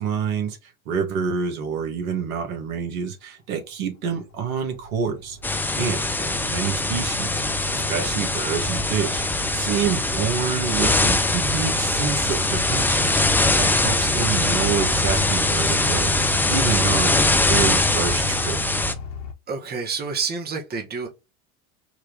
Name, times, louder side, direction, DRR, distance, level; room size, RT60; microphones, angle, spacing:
voice 1, 0.0-5.4 5.7-7.4 7.7-18.6, right 7 dB, 70° right, 2.0 m, -28 dB
sound 1, 4.2-19.3, right 3 dB, 65° left, 1.5 m, -34 dB
sound 2, 5.4-18.9, left 2 dB, 5° left, 0.5 m, -22 dB
voice 2, 19.5-21.1, right 5 dB, 20° right, 1.4 m, -29 dB
4.7 x 3.1 x 3.3 m
hypercardioid pair, 90°, 43 cm